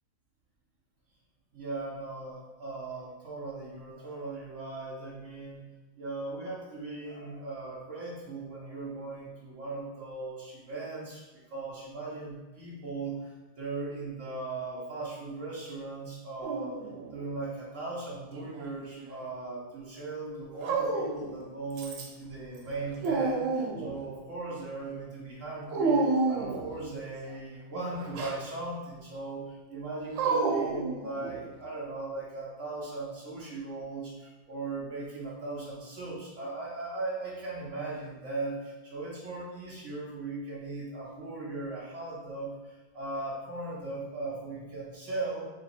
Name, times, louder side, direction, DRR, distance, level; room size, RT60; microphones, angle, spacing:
voice 1, 1.5-5.7 6.0-16.8 17.1-45.5, right 2 dB, 85° right, -6 dB, 0.6 m, -38 dB
Dog, 16.4-17.2 18.3-19.2 20.6-21.4 21.8-22.3 22.6-24.0 25.7-26.8 27.9-28.4 30.1-31.5, right 4 dB, 70° right, 1.2 m, -30 dB
3.5 x 2.9 x 4.1 m, 1.1 s
omnidirectional pair, 2.4 m